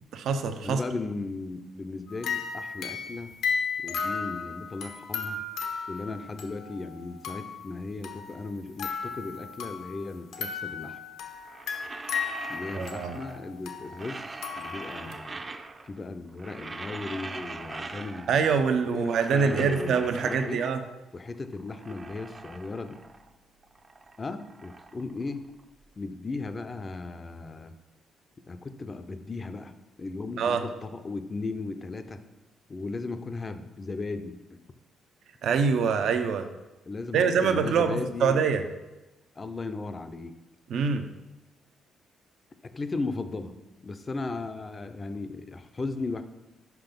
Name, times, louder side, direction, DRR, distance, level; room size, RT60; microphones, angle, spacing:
voice 1, 0.1-0.8 12.7-13.2 18.3-20.8 30.4-30.6 35.4-36.5 37.1-38.6 40.7-41.0, right 6 dB, 70° right, 7 dB, 0.7 m, -25 dB
voice 2, 0.6-3.3 3.8-5.4 5.9-11.0 12.5-15.4 15.8-20.6 21.1-23.0 24.2-25.4 26.0-27.7 28.5-29.7 30.0-32.2 32.7-34.6 36.9-38.4 39.4-40.4 42.7-43.5 43.8-46.2, left 3 dB, 30° left, 9 dB, 0.5 m, -36 dB
sound 1, 2.1-7.6 8.0-10.0 10.3-15.1, left 5 dB, 85° left, 1.0 m, -35 dB
sound 2, 11.3-13.5 13.8-16.0 16.3-18.5 18.8-20.9 21.3-23.4 23.6-25.8, right 3 dB, 30° right, 0.5 m, -42 dB
5.9 x 5.3 x 5.2 m, 1.1 s
cardioid pair, 90°, 0 cm